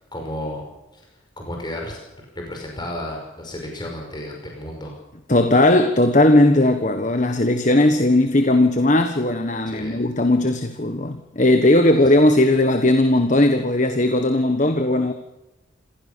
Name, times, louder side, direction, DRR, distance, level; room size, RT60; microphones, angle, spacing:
voice 1, 0.1-0.6 0.9-1.0 1.4-2.0 2.4-4.9 9.7-10.0, left 1 dB, 20° left, 5.5 m, -32 dB
voice 2, 5.3-15.1, left 1 dB, 35° left, 1.4 m, -17 dB
27.5 x 16.5 x 6.9 m
head